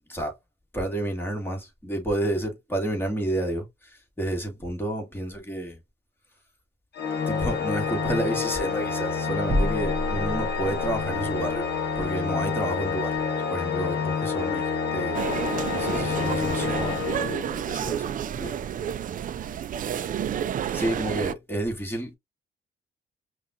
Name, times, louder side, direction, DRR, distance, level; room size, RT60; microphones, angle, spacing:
voice 1, 0.7-5.8 7.3-11.6 12.0-13.2 13.5-15.2 15.7-18.6 20.7-22.2, right 1 dB, 10° left, 1.9 m, -30 dB
Organ, 6.9-17.8, left 5 dB, 55° left, 1.0 m, -28 dB
sound 1, 9.5-11.1, equal, 15° right, 2.4 m, -28 dB
sound 2, 15.1-21.3, right 9 dB, 45° right, 0.4 m, -30 dB
5.5 x 2.4 x 2.5 m
cardioid pair, 90°, 20 cm